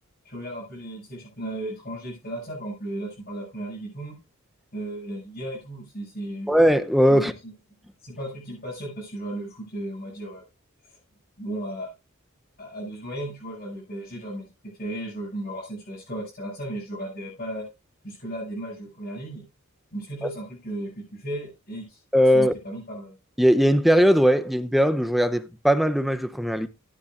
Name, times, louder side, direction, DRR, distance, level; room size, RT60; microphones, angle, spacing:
voice 1, 0.2-4.2 4.7-6.6 7.1-7.5 8.0-10.4 11.4-11.9 12.6-17.6 18.0-19.4 19.9-22.0 22.3-23.1, right 1 dB, 45° left, 7.2 m, -35 dB
voice 2, 6.5-7.3 22.1-22.5 23.4-26.7, equal, ahead, 0.7 m, -19 dB
16.0 x 10.0 x 2.5 m
head